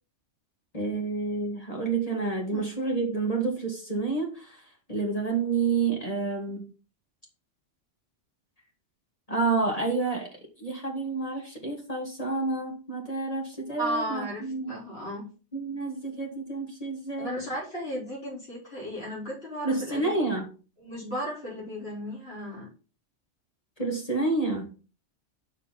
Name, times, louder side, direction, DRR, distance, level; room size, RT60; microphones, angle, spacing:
voice 1, 0.7-4.6 4.9-6.7 9.3-10.3 10.6-14.8 15.5-17.3 19.6-20.5 23.8-24.7, right 3 dB, 30° left, 0 dB, 1.8 m, -29 dB
voice 2, 13.8-14.4 14.7-15.3 17.2-20.4 20.8-22.7, equal, 55° left, -4 dB, 4.7 m, -35 dB
6.5 x 5.3 x 5.7 m, 0.35 s
omnidirectional pair, 1.2 m